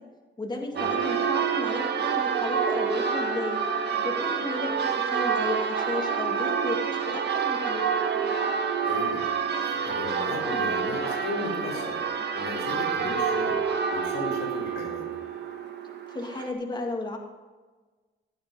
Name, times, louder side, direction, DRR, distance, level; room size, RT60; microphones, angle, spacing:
voice 1, 0.4-3.6 4.0-7.8 16.1-17.2, left 2 dB, 20° left, 1 dB, 1.9 m, -34 dB
Church bell, 0.8-16.5, right 6 dB, 55° right, 1.6 m, -28 dB
voice 2, 8.8-9.2 9.6-12.0 12.3-13.6 13.9-15.1, left 3 dB, 85° left, -4 dB, 4.6 m, -35 dB
15.5 x 8.7 x 5.4 m, 1.3 s
cardioid pair, 90°, 20 cm